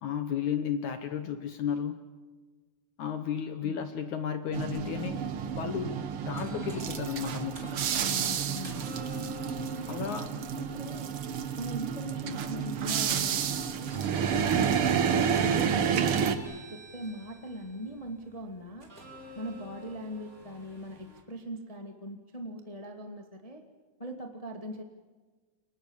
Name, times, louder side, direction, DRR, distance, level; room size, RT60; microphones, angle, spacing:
voice 1, 0.0-2.0 3.0-5.2 5.6-7.7 9.9-10.3, left 8 dB, 65° left, 9 dB, 2.0 m, -33 dB
sound 1, 4.5-16.4, right 7 dB, 85° right, 1.2 m, -30 dB
sound 2, 6.3-21.2, equal, 20° right, 3.9 m, -49 dB
voice 2, 7.9-9.0 9.7-10.3 10.6-11.1 11.6-14.3 14.7-14.8 15.0-16.2 16.7-18.9 19.3-23.6 24.0-24.8, equal, 40° left, 5 dB, 0.5 m, -41 dB
29.5 x 24.5 x 7.3 m, 1.4 s
omnidirectional pair, 4.6 m